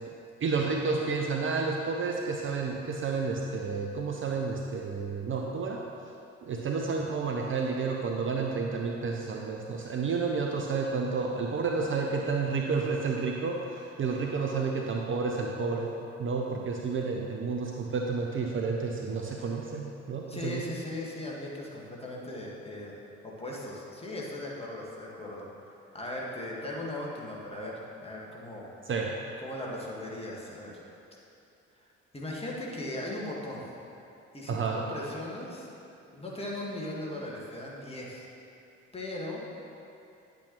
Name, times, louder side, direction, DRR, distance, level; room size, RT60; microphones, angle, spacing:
voice 1, 0.4-5.8 6.4-20.6 28.9-29.2 34.5-34.8, right 4 dB, 35° right, 0 dB, 0.7 m, -30 dB
voice 2, 20.3-22.9 23.2-25.5 25.9-28.7 29.4-30.8 31.7-31.9 32.1-33.7 34.3-35.7 36.1-38.3 38.9-39.6, left 1 dB, 15° left, -4 dB, 2.0 m, -38 dB
10.0 x 8.3 x 3.2 m, 2.7 s
figure-of-eight pair, 45°, 37 cm